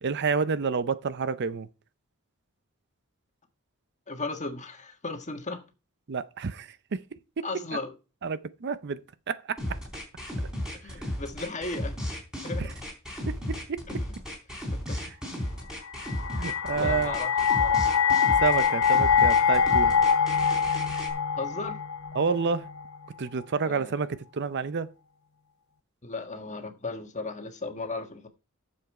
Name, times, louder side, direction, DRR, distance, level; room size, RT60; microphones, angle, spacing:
voice 1, 0.0-1.7 6.1-7.0 7.4-7.5 8.2-9.0 9.3-9.6 12.6-12.7 13.3-13.9 16.3-17.2 18.4-20.0 22.1-22.7 23.2-24.9, right 5 dB, 55° right, 0.5 m, -29 dB
voice 2, 4.1-5.6 7.4-7.9 10.8-12.0 12.4-12.7 13.9-14.0 14.7-15.0 16.7-17.3 17.6-17.8 21.3-21.8 23.6-23.9 26.0-28.3, left 3 dB, 35° left, 1.5 m, -36 dB
sound 1, 9.6-21.1, left 1 dB, 5° right, 3.9 m, -34 dB
sound 2, 15.8-23.0, left 6 dB, 65° left, 1.0 m, -24 dB
10.5 x 7.1 x 4.7 m
head